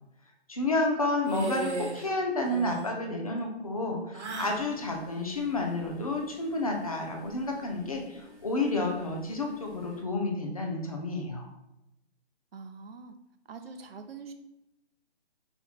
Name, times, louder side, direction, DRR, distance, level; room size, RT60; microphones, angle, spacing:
voice 1, 0.5-11.5, left 2 dB, 35° left, 1 dB, 0.5 m, -30 dB
sound 1, 1.2-2.1 2.4-2.9 4.1-4.7, right 4 dB, 85° right, 0.9 m, -35 dB
sound 2, 4.3-10.0, left 1 dB, 60° left, 1.2 m, -53 dB
voice 2, 12.5-13.1 13.5-14.3, right 4 dB, 60° right, 7 dB, 0.5 m, -44 dB
4.3 x 2.2 x 4.0 m, 0.89 s
hypercardioid pair, 175°, 33 cm